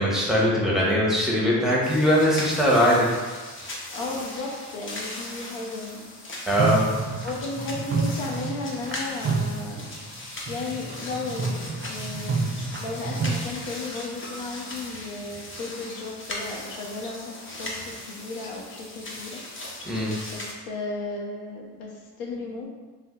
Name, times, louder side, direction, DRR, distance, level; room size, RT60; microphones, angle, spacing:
voice 1, 0.0-3.1 6.5-6.9 19.8-20.1, equal, ahead, -5 dB, 1.0 m, -21 dB
sound 1, 1.8-20.5, left 1 dB, 25° left, 0.7 m, -38 dB
voice 2, 3.9-6.1 7.2-9.9 10.5-12.3 12.6-19.4 20.3-22.7, left 3 dB, 75° left, -1 dB, 0.7 m, -34 dB
sound 2, 6.5-9.0 9.2-10.2 10.5-13.4, right 4 dB, 25° right, 0.5 m, -29 dB
2.6 x 2.2 x 3.6 m, 1.3 s
hypercardioid pair, 60°, 46 cm